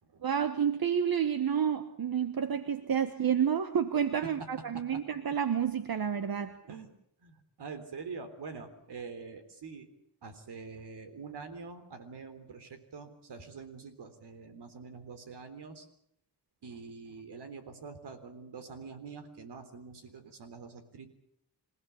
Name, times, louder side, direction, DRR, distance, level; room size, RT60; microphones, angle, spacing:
voice 1, 0.2-6.5, right 8 dB, 60° right, 10 dB, 1.4 m, -29 dB
voice 2, 6.5-6.9 7.2-9.9 10.2-15.9 16.6-21.1, right 5 dB, 85° right, 9 dB, 3.7 m, -45 dB
27.5 x 16.5 x 8.4 m, 0.71 s
cardioid pair, 80°, 40 cm